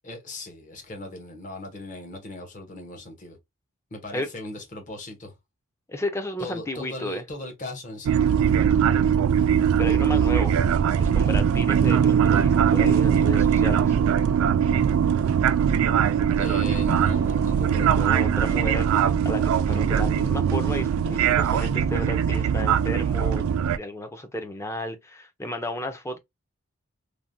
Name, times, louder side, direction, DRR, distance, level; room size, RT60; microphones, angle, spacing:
voice 1, 0.0-3.4 3.9-5.3 6.4-8.1 16.4-18.1, left 2 dB, 40° left, 0.9 m, -38 dB
voice 2, 5.9-7.2 9.8-10.5 11.0-14.0 17.9-23.5 23.8-26.2, left 1 dB, 15° left, 0.4 m, -33 dB
sound 1, 8.0-23.8, right 8 dB, 80° right, 0.3 m, -21 dB
3.2 x 2.1 x 2.6 m
head